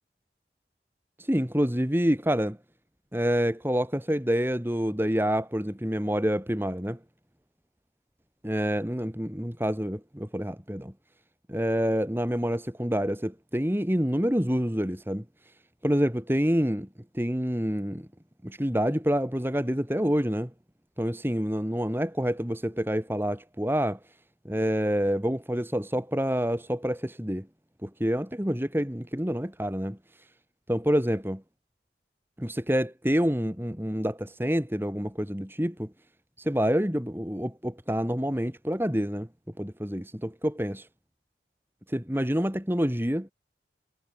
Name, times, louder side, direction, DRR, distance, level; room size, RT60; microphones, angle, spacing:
voice 1, 1.2-2.6 3.1-7.0 8.4-10.9 11.5-15.2 15.8-16.9 17.1-18.1 18.4-20.5 21.0-24.0 24.4-27.5 27.8-30.0 30.7-31.4 32.4-35.9 36.4-39.3 39.6-40.9 41.9-43.3, equal, 10° right, 2.5 m, -27 dB
head